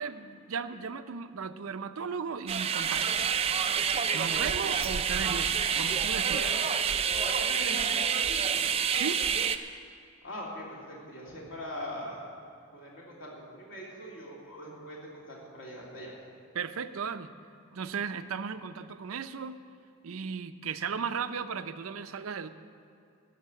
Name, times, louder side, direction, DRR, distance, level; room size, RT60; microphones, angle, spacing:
voice 1, 0.0-3.2 4.1-6.4 8.9-9.3 16.5-17.3 17.7-19.6 20.0-22.5, right 6 dB, 80° right, 11 dB, 0.6 m, -36 dB
sound 1, 2.5-9.6, right 7 dB, 25° right, 0.4 m, -28 dB
voice 2, 4.1-4.9 6.2-6.5 7.1-8.8 10.2-12.3 12.7-16.2, equal, 60° left, -4 dB, 3.2 m, -41 dB
13.0 x 6.6 x 8.8 m, 2.6 s
head